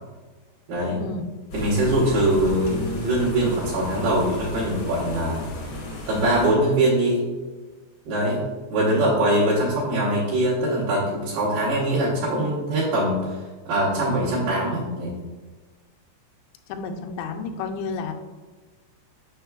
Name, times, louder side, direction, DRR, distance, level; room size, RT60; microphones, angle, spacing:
voice 1, 0.7-1.0 1.5-5.4 6.1-7.3 8.1-8.4 8.7-15.1, right 1 dB, 70° right, -8 dB, 2.9 m, -22 dB
sound 1, 1.5-6.5, left 2 dB, 70° left, 1.2 m, -34 dB
voice 2, 16.7-18.1, left 4 dB, 85° left, 4 dB, 2.7 m, -31 dB
6.8 x 6.3 x 2.3 m, 1.3 s
omnidirectional pair, 4.9 m